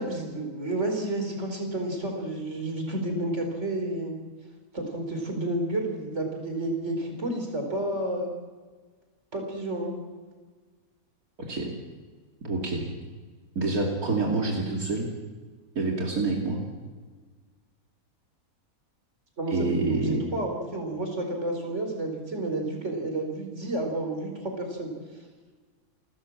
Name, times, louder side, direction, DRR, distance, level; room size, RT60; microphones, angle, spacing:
voice 1, 0.0-4.2 4.7-8.3 9.3-9.9 19.4-24.9, right 1 dB, 50° right, 3 dB, 4.7 m, -30 dB
voice 2, 12.4-12.9 13.5-15.1 15.7-16.6 19.5-20.2, right 3 dB, 85° right, -1 dB, 3.0 m, -27 dB
29.0 x 13.5 x 7.3 m, 1.4 s
omnidirectional pair, 1.5 m